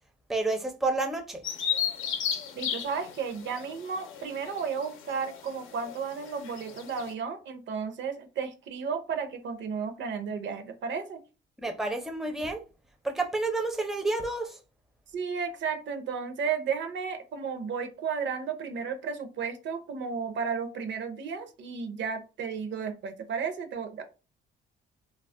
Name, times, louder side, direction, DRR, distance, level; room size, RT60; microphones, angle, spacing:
voice 1, 0.3-1.4 11.6-12.6 13.0-14.6, right 2 dB, ahead, 0.5 m, -29 dB
Bird vocalization bird call bird song, 1.4-7.1, left 8 dB, 85° left, 0.6 m, -35 dB
voice 2, 2.5-11.2 15.1-24.0, right 6 dB, 65° right, 0.6 m, -33 dB
2.3 x 2.0 x 3.5 m
cardioid pair, 90°, 20 cm